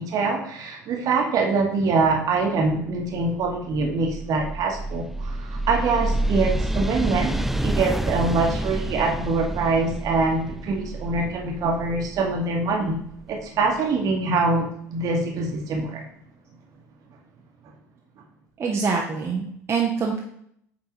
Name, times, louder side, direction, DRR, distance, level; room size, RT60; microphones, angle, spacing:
voice 1, 0.0-13.0 13.3-16.1, right 3 dB, 45° right, 1 dB, 1.3 m, -24 dB
sound 1, 3.0-13.7, right 1 dB, 5° right, 0.3 m, -29 dB
voice 2, 18.6-20.2, right 5 dB, 30° right, -2 dB, 0.9 m, -25 dB
8.4 x 3.9 x 2.9 m, 0.70 s
figure-of-eight pair, 65°, 8 cm